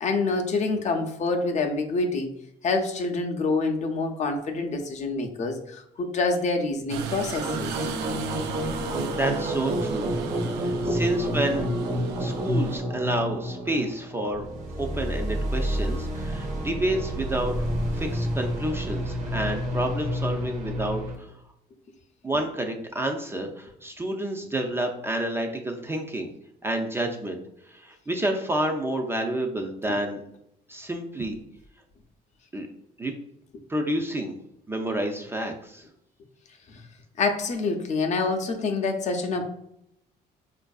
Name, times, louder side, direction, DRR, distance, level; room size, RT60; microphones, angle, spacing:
voice 1, 0.0-2.3 2.6-7.7 10.8-11.0 36.7-36.8 37.2-39.5, left 3 dB, 45° left, 4 dB, 0.6 m, -26 dB
sound 1, 6.9-12.8, right 6 dB, 85° right, 0.4 m, -35 dB
sound 2, 7.4-21.2, equal, 45° right, 0.7 m, -29 dB
voice 2, 9.1-10.1 10.6-11.7 12.2-17.5 17.9-21.3 22.2-26.3 26.6-27.4 27.7-30.2 30.7-31.4 32.5-32.7 33.0-33.1 33.7-34.4 34.7-35.8, right 1 dB, 15° right, 3 dB, 0.4 m, -29 dB
4.3 x 2.5 x 2.3 m, 0.76 s
cardioid pair, 110°, 17 cm